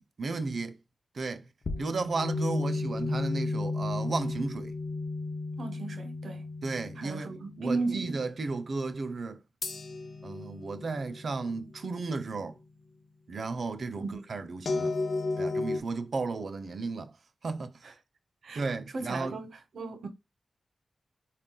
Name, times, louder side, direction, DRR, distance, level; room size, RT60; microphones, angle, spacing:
voice 1, 0.2-0.8 1.1-1.5 1.8-4.7 6.6-9.4 10.2-12.6 13.3-15.0 15.4-17.1 17.4-17.7 18.5-19.4, right 3 dB, 60° right, 0.5 m, -34 dB
sound 1, 1.7-7.9 9.6-12.4 14.7-15.8, left 3 dB, 60° left, 0.5 m, -33 dB
voice 2, 5.6-6.5 7.0-8.2 14.0-14.3 17.8-17.9 18.4-18.6 18.9-20.1, right 3 dB, 85° right, 0.8 m, -35 dB
4.3 x 2.4 x 3.7 m
wide cardioid pair, 115°, 0 cm